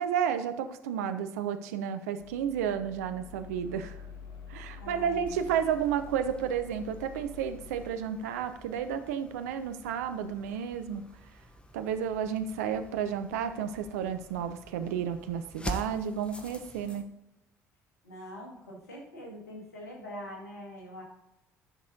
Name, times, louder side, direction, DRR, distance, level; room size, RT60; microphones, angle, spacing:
voice 1, 0.0-4.0 4.5-11.1 11.7-17.1, right 8 dB, 75° right, 10 dB, 0.7 m, -32 dB
sound 1, 2.2-7.9, left 6 dB, 65° left, 1.7 m, -47 dB
voice 2, 4.8-5.3 18.0-21.0, equal, 85° left, -2 dB, 2.2 m, -44 dB
sound 2, 5.3-17.0, equal, 10° left, 1.4 m, -46 dB
11.0 x 6.2 x 3.9 m, 0.91 s
figure-of-eight pair, 50°, 8 cm